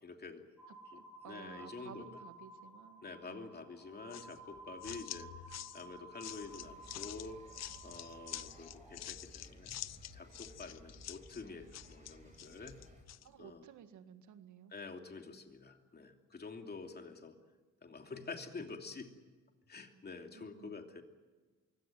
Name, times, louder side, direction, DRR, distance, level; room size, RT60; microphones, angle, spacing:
voice 1, 0.0-0.4 0.9-2.1 3.0-5.3 5.7-7.4 7.8-9.7 10.1-12.8 13.4-13.6 14.7-17.4 17.8-19.1 19.7-21.0, left 4 dB, 35° left, 4 dB, 2.9 m, -48 dB
sound 1, 0.6-9.1, right 2 dB, ahead, 8.0 m, -54 dB
voice 2, 0.9-3.5 13.2-14.7 20.3-20.8, right 8 dB, 75° right, 9 dB, 1.9 m, -55 dB
sound 2, 4.1-13.3, left 12 dB, 60° left, 0.7 m, -48 dB
sound 3, 6.4-13.0, right 2 dB, 25° right, 6.5 m, -58 dB
23.5 x 16.5 x 9.4 m, 1.3 s
cardioid pair, 90°, 30 cm